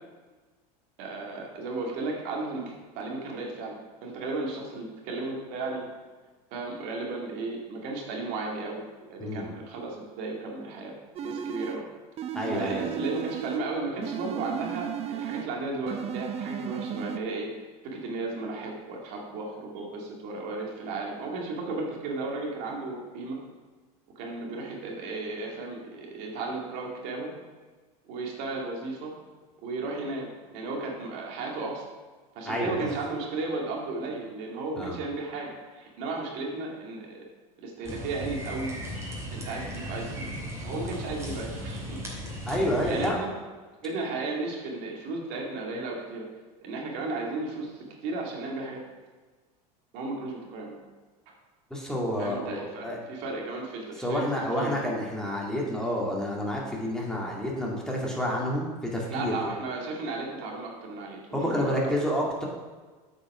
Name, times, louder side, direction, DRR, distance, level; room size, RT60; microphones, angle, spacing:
voice 1, 1.0-5.9 6.5-10.9 11.2-11.8 12.4-17.5 17.8-23.4 24.2-27.3 28.1-29.1 29.6-31.9 32.4-37.3 37.6-38.7 39.3-40.4 40.6-42.0 42.5-43.3 43.8-46.2 46.6-48.8 49.9-50.8 52.2-54.2 54.6-54.7 59.1-61.8, right 3 dB, 60° right, -1 dB, 2.2 m, -34 dB
sound 1, 11.2-11.8 12.2-13.7 14.0-15.5 15.9-17.2, right 9 dB, 30° right, 0.6 m, -34 dB
voice 2, 12.4-12.9 32.5-32.9 34.8-35.0 42.4-43.3 51.7-53.0 54.0-59.3 61.3-62.5, equal, 5° left, -3 dB, 2.0 m, -29 dB
sound 2, 37.8-43.1, equal, 15° right, 2.6 m, -36 dB
8.4 x 5.5 x 6.0 m, 1.4 s
supercardioid pair, 105°, 20 cm